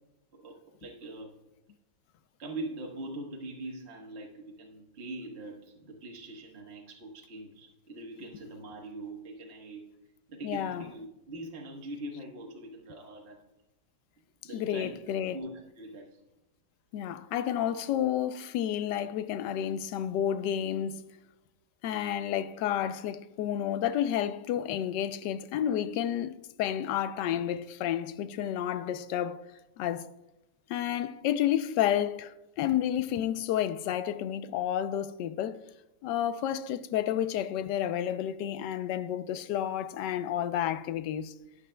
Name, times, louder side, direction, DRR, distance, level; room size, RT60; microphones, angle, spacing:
voice 1, 0.3-1.4 2.4-9.9 10.3-13.4 14.4-16.2, right 2 dB, 40° right, 1.4 m, -42 dB
voice 2, 10.4-10.8 14.5-15.4 16.9-21.0 21.8-29.4 29.8-30.1 30.7-35.6 36.0-41.3, left 10 dB, 80° left, 1.2 m, -30 dB
13.5 x 9.9 x 2.2 m
omnidirectional pair, 1.9 m